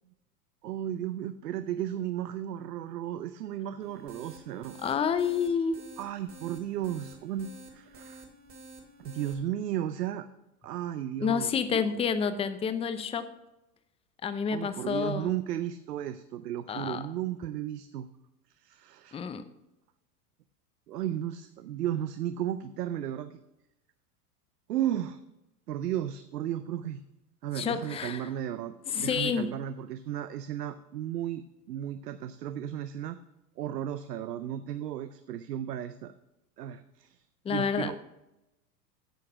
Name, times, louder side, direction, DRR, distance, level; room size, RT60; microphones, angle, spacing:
voice 1, 0.6-4.7 6.0-8.3 9.0-10.3 10.6-12.0 14.5-18.1 18.6-19.3 20.9-23.4 24.7-25.2 25.7-27.0 27.4-33.2 33.6-36.1 36.6-37.2 37.5-38.0, right 11 dB, 90° right, 11 dB, 0.6 m, -34 dB
sound 1, 3.8-9.3, right 2 dB, 30° right, 2.0 m, -50 dB
voice 2, 4.8-5.8 11.2-13.3 14.2-15.3 16.7-17.0 19.1-19.4 27.5-28.3 28.9-29.5 37.4-37.9, left 6 dB, 15° left, 11 dB, 0.5 m, -29 dB
9.3 x 6.5 x 5.6 m, 0.93 s
hypercardioid pair, 100°, 46 cm